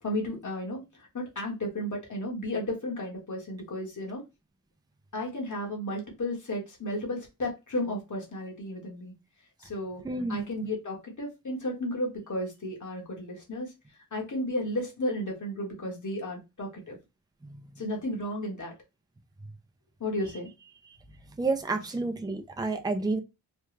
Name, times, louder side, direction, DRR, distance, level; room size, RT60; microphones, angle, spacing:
voice 1, 0.0-4.2 5.1-9.1 9.6-10.0 10.3-13.7 14.1-17.0 17.8-18.7 20.0-20.5, left 1 dB, 55° left, 1.5 m, -33 dB
voice 2, 10.0-10.5 17.4-17.5 20.9-21.0 21.4-23.2, right 3 dB, 10° right, 0.5 m, -30 dB
3.3 x 2.3 x 3.2 m
wide cardioid pair, 70°, 35 cm